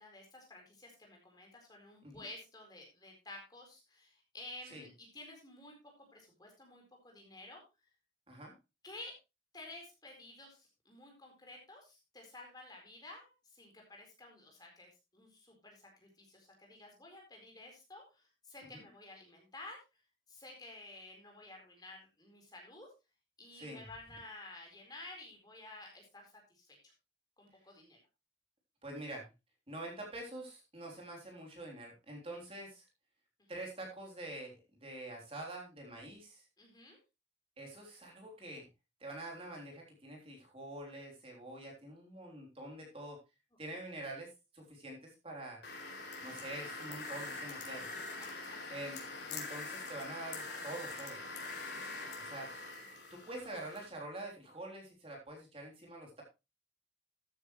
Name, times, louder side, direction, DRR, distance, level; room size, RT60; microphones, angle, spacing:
voice 1, 0.0-7.6 8.8-9.1 9.5-20.0 20.3-22.9 23.4-26.9 27.4-28.0 36.6-37.0 48.2-48.6 51.7-52.1, left 2 dB, 20° left, 0 dB, 4.3 m, -52 dB
voice 2, 28.8-29.3 29.7-32.9 33.5-36.5 37.6-38.7 39.0-43.2 43.6-45.6 46.2-47.9 48.7-49.0 49.2-51.2 52.2-52.5 53.1-56.2, right 1 dB, 30° right, 0 dB, 3.6 m, -46 dB
sound 1, 45.6-53.9, left 3 dB, 60° left, 4.3 m, -44 dB
13.5 x 9.6 x 3.2 m, 0.26 s
head